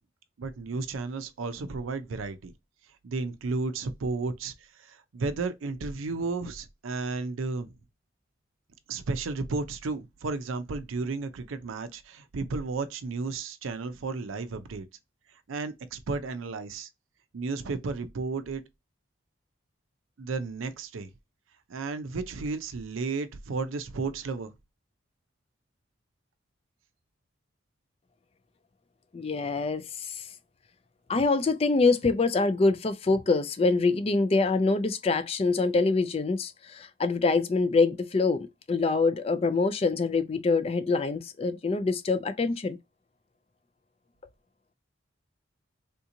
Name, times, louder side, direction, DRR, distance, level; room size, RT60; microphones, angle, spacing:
voice 1, 0.4-2.5 3.0-7.7 8.9-14.8 15.5-16.9 17.3-18.6 20.2-21.1 21.7-24.5, right 3 dB, 85° right, 0.5 m, -33 dB
voice 2, 29.1-30.3 31.1-42.8, left 3 dB, 30° left, 0.3 m, -25 dB
3.5 x 2.8 x 2.5 m
head